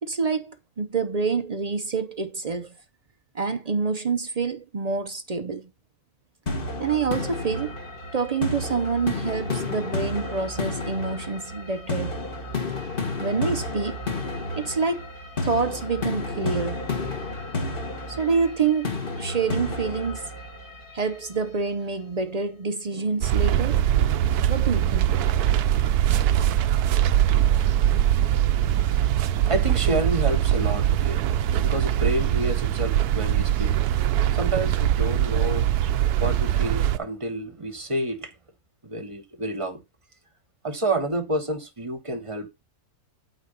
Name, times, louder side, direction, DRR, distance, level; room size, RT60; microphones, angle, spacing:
voice 1, 0.0-2.7 3.3-5.7 6.8-7.7 8.1-12.2 13.2-14.0 14.6-15.1 15.4-16.9 18.1-20.2 20.9-23.8 24.5-25.2, right 5 dB, 55° right, 0.4 m, -27 dB
sound 1, 6.5-21.4, left 2 dB, 35° left, 1.8 m, -31 dB
sound 2, 23.2-37.0, right 11 dB, 85° right, 1.2 m, -22 dB
voice 2, 28.7-31.2 31.6-33.8 34.3-38.3 38.8-39.8 40.6-42.5, right 1 dB, 25° right, 1.0 m, -29 dB
8.8 x 4.1 x 5.4 m
omnidirectional pair, 1.6 m